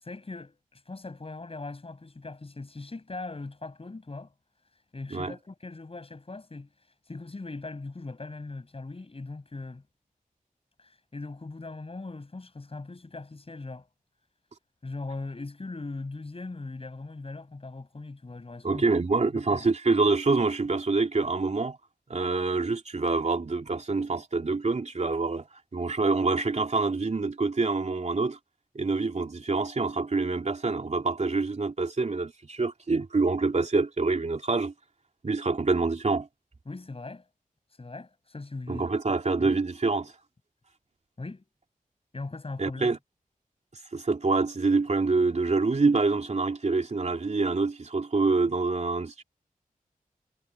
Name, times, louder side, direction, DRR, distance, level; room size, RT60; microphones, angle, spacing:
voice 1, 0.0-4.3 4.9-6.7 7.1-9.8 10.8-13.9 14.8-19.1 19.3-19.7 36.7-37.2 37.8-38.9 39.4-39.6 41.2-41.5 42.1-42.9, left 3 dB, 40° left, 7.4 m, -40 dB
voice 2, 18.6-21.8 22.1-25.5 25.7-28.4 28.7-34.7 35.2-36.3 38.7-40.1 42.6-43.0 43.9-49.2, right 3 dB, 50° right, 3.0 m, -26 dB
wide cardioid pair, 85°, 15 cm